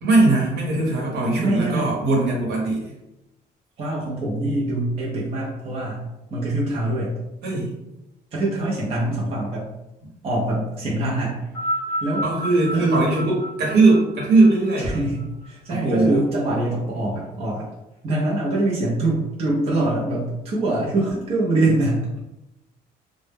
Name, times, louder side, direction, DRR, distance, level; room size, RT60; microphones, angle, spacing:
voice 1, 0.0-2.9 7.4-7.7 10.5-10.6 12.2-14.9 15.7-16.2, right 2 dB, 75° right, -3 dB, 1.0 m, -19 dB
voice 2, 1.4-1.9 3.8-7.1 8.3-9.7 10.2-11.4 12.0-12.2 12.7-13.0 14.8-17.7 18.0-22.2, right 2 dB, 35° right, -4 dB, 0.5 m, -24 dB
sound 1, 11.4-16.0 16.9-17.0, right 1 dB, 15° left, 0.8 m, -31 dB
2.1 x 2.0 x 3.3 m, 0.92 s
cardioid pair, 155°, 17 cm